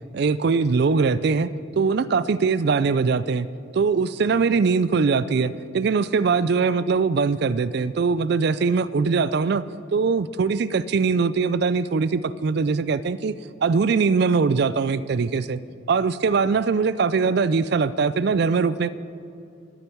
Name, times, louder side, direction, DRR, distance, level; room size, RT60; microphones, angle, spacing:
voice 1, 0.1-1.5 1.8-3.5 3.7-9.6 9.9-15.6 15.9-18.9, right 5 dB, 55° right, 16 dB, 0.4 m, -21 dB
21.5 x 9.0 x 4.6 m, 2.6 s
head